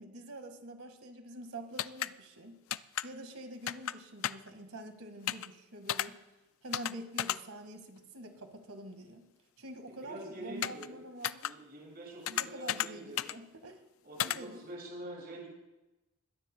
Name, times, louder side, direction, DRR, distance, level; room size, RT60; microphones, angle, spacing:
voice 1, 0.0-2.6 3.0-6.2 6.6-9.2 9.6-11.4 12.3-13.8 14.1-14.7, right 1 dB, 75° right, 6 dB, 1.9 m, -46 dB
sound 1, 1.8-2.1 2.7-3.1 3.7-3.9 4.2-4.5 5.3-5.5 5.9-6.1 6.7-6.9 7.2-7.4 10.6-10.9 11.2-11.5 12.3-12.9 13.2-13.4 14.2-14.4, left 11 dB, 65° left, 0.4 m, -32 dB
voice 2, 9.9-11.0 11.4-13.3 14.0-15.5, right 1 dB, 45° right, -3 dB, 6.5 m, -46 dB
22.0 x 17.0 x 2.3 m, 1.0 s
head